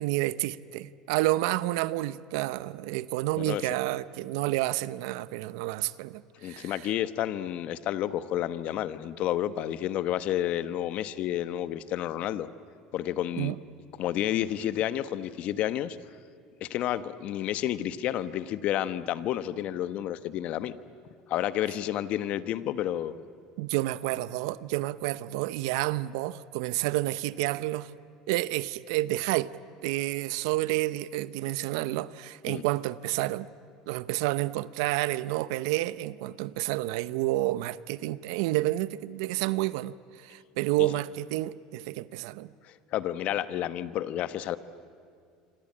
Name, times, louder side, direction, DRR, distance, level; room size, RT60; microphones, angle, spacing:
voice 1, 0.0-6.7 13.4-13.6 23.6-27.9 28.3-29.5 29.8-33.5 33.9-42.5, right 17 dB, 80° right, 0.7 m, -30 dB
voice 2, 6.4-12.5 12.9-13.5 14.0-16.0 16.6-20.8 21.3-23.2 32.5-32.6 40.8-40.9 42.6-44.6, left 12 dB, 55° left, 1.1 m, -30 dB
26.5 x 25.5 x 8.7 m
supercardioid pair, 110°, 3 cm